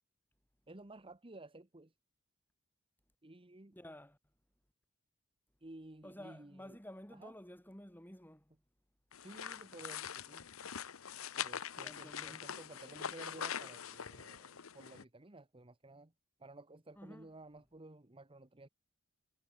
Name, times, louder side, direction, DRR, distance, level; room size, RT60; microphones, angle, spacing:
voice 1, 0.7-1.9 3.2-3.7 5.6-6.8 7.1-7.3 9.2-10.5 11.4-16.1 16.4-18.7, right 2 dB, 25° right, 1.2 m, -54 dB
voice 2, 3.7-4.2 6.0-8.5 11.8-12.4 17.0-17.3, left 1 dB, 10° left, 5.6 m, -52 dB
sound 1, 9.1-15.0, left 8 dB, 90° left, 1.0 m, -43 dB
head